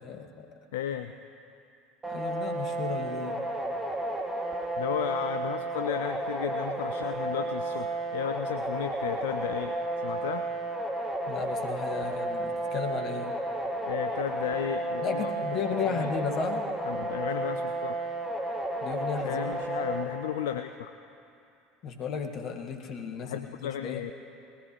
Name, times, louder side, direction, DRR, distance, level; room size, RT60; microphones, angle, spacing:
voice 1, 0.0-0.5 2.0-3.4 11.3-13.3 15.0-16.7 18.8-19.6 21.8-24.0, left 6 dB, 45° left, 4 dB, 1.4 m, -34 dB
voice 2, 0.7-1.1 4.8-9.8 10.0-10.5 13.8-15.6 15.9-16.1 16.9-18.0 19.2-20.9 23.2-24.1, left 10 dB, 65° left, 9 dB, 0.4 m, -34 dB
sound 1, 2.0-20.0, right 2 dB, 15° right, 2.2 m, -32 dB
20.0 x 17.0 x 3.0 m, 2.6 s
figure-of-eight pair, 70°, 0 cm